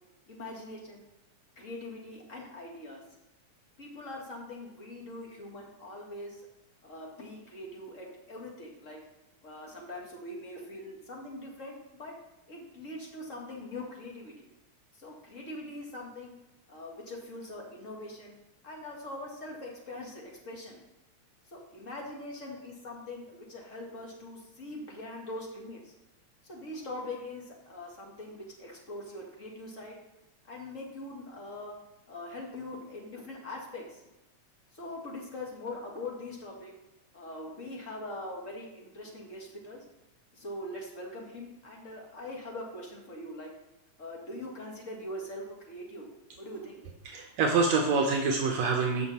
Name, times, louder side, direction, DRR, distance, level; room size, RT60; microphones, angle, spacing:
voice 1, 0.3-1.0 1.6-3.0 3.8-6.4 6.8-9.0 9.4-12.1 12.5-14.5 15.0-16.3 16.7-18.3 18.6-20.8 21.5-25.9 26.5-30.0 30.5-31.7 32.1-34.0 34.7-36.7 37.1-39.8 40.3-43.5 44.0-46.1 46.4-46.8, left 1 dB, 30° left, -1 dB, 2.1 m, -42 dB
voice 2, 47.1-49.1, right 4 dB, 70° right, 1 dB, 2.1 m, -26 dB
14.0 x 6.0 x 4.2 m, 0.92 s
omnidirectional pair, 3.3 m